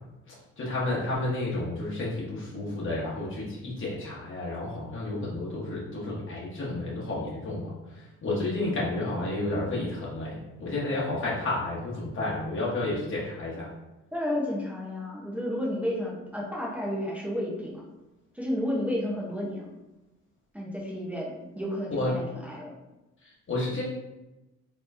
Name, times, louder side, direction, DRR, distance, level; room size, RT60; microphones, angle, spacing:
voice 1, 0.6-13.7 21.9-22.2 23.2-23.8, left 2 dB, 40° left, -6 dB, 1.1 m, -31 dB
voice 2, 14.1-17.8 18.3-19.6 20.5-22.7, left 1 dB, 5° right, -5 dB, 0.8 m, -31 dB
4.3 x 3.0 x 2.6 m, 1.0 s
cardioid pair, 90°, 30 cm